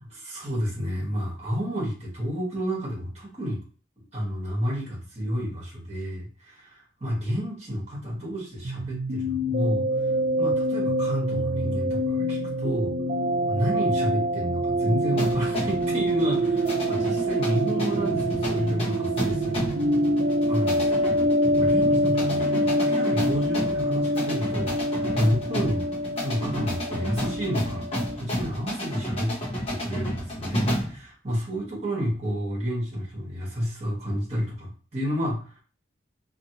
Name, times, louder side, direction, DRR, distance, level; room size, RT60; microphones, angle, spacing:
voice 1, 0.0-3.6 4.1-9.9 10.4-12.9 13.5-19.6 20.5-21.3 21.6-25.9 26.2-27.8 28.1-29.3 29.7-35.6, equal, 35° right, -3 dB, 1.2 m, -30 dB
sound 1, 8.6-28.2, equal, 70° right, 0.5 m, -25 dB
sound 2, 15.2-31.0, equal, 30° left, 0.9 m, -32 dB
2.6 x 2.6 x 2.7 m, 0.38 s
head